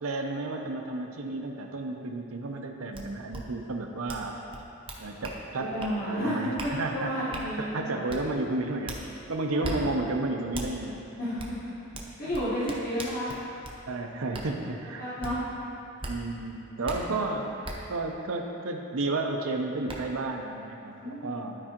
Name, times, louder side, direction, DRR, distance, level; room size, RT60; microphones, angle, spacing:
voice 1, 0.0-4.4 5.0-5.7 6.1-7.3 7.6-9.0 9.3-11.0 13.9-15.3 16.1-17.5 17.9-21.6, right 2 dB, 85° right, 3 dB, 0.6 m, -32 dB
sound 1, 2.9-3.0 3.3-3.4 4.1-4.2 4.5-5.4 5.8-5.9 6.6-6.7 7.3-7.5 8.1-8.2 8.9-9.0 9.6-9.8 10.5-10.7 11.4-11.5 11.9-13.8 14.3-14.5 15.2-15.3 16.0-16.1 16.8-17.0 17.6-17.8 19.3-19.4 19.9-20.0, right 2 dB, 25° right, 0.7 m, -37 dB
voice 2, 5.7-6.4 6.6-8.1 9.6-9.9 11.2-11.9 12.2-13.3 15.0-15.4 17.1-17.4 20.9-21.6, equal, 40° left, -10 dB, 1.1 m, -32 dB
12.0 x 4.8 x 2.9 m, 2.9 s
head